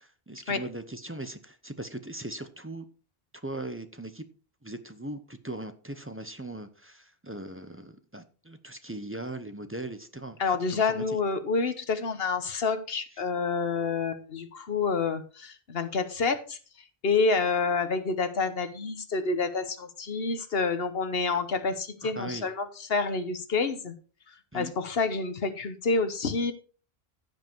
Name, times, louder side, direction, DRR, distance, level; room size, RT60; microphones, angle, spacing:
voice 1, 0.0-2.9 3.4-4.2 4.6-11.2 22.0-22.5 24.5-24.7, right 2 dB, 15° right, 9 dB, 0.8 m, -39 dB
voice 2, 10.4-16.6 17.0-23.9 24.5-26.5, left 4 dB, 70° left, 10 dB, 1.3 m, -28 dB
15.0 x 5.3 x 4.5 m, 0.37 s
omnidirectional pair, 1.1 m